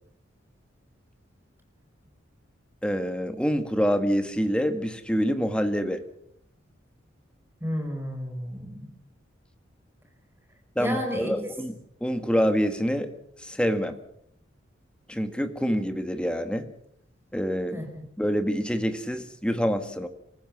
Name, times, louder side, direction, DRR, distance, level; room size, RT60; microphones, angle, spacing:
voice 1, 2.8-6.0 10.7-11.7 12.0-13.1 13.4-14.0 15.1-16.6 17.3-17.8 18.2-20.1, equal, 5° left, 8 dB, 1.7 m, -26 dB
voice 2, 7.6-8.9 10.8-11.4 17.7-18.1, equal, 10° right, 4 dB, 4.9 m, -32 dB
27.0 x 14.5 x 7.2 m, 0.72 s
head